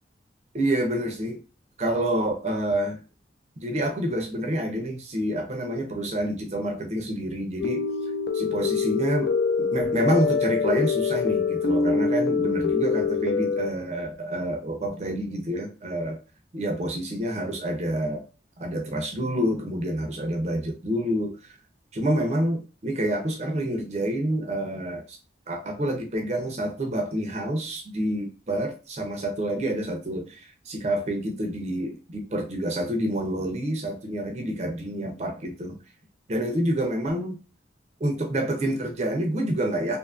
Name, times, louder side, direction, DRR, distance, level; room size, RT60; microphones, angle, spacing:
voice 1, 0.5-1.4 1.8-3.0 3.6-7.9 8.3-16.2 16.5-18.2 18.6-21.4 21.9-25.2 25.5-35.8 36.3-37.4 38.0-40.0, right 1 dB, 35° right, 3 dB, 0.5 m, -28 dB
sound 1, 7.6-13.7, left 5 dB, 65° left, 0.4 m, -25 dB
2.5 x 2.4 x 2.4 m, 0.32 s
head